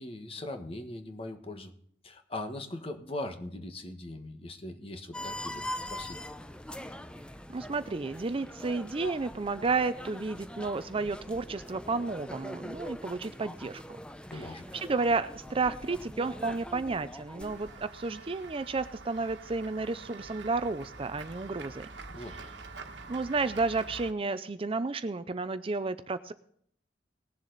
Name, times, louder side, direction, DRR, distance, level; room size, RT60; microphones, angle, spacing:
voice 1, 0.0-1.7 2.0-6.3 14.3-14.7 22.1-22.5, left 1 dB, 35° left, 6 dB, 1.4 m, -40 dB
sound 1, 5.1-17.9, left 1 dB, 5° left, 0.6 m, -43 dB
voice 2, 7.5-13.8 14.3-14.4 14.7-21.9 23.1-26.3, right 3 dB, 30° right, 12 dB, 0.5 m, -32 dB
Run / Walk footsteps / Bell, 17.4-24.1, right 3 dB, 80° right, 1.3 m, -46 dB
19.0 x 7.3 x 4.0 m, 0.63 s
head